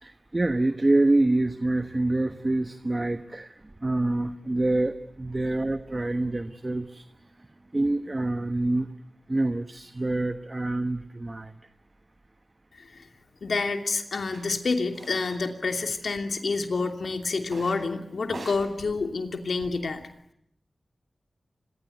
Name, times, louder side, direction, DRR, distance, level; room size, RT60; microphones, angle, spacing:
voice 1, 0.0-7.1 7.4-7.5 7.7-8.9 9.3-11.6, right 2 dB, 30° right, 10 dB, 1.2 m, -26 dB
voice 2, 13.4-20.0, left 4 dB, 75° left, 6 dB, 2.9 m, -28 dB
sound 1, 14.3-14.4 14.9-15.4 15.7-16.5 17.4-17.9 18.2-20.0, right 2 dB, 65° right, 7.5 m, -44 dB
26.0 x 22.0 x 9.4 m, 0.72 s
cardioid pair, 50°, 0 cm